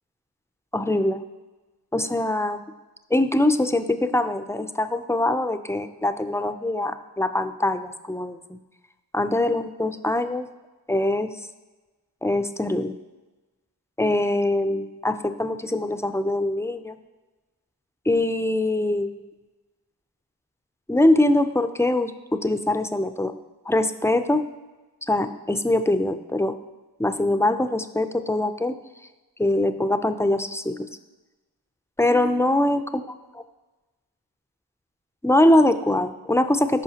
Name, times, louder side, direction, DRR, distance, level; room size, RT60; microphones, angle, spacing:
voice 1, 0.7-1.2 1.9-2.6 3.1-8.6 9.1-10.5 10.9-11.3 12.2-13.0 14.0-17.0 18.1-19.1 20.9-23.3 23.7-24.5 25.1-26.6 27.0-28.8 29.4-30.9 32.0-32.8 35.2-36.8, left 1 dB, 5° left, 10 dB, 0.4 m, -23 dB
14.0 x 5.6 x 2.9 m, 1.2 s
cardioid pair, 50°, 40 cm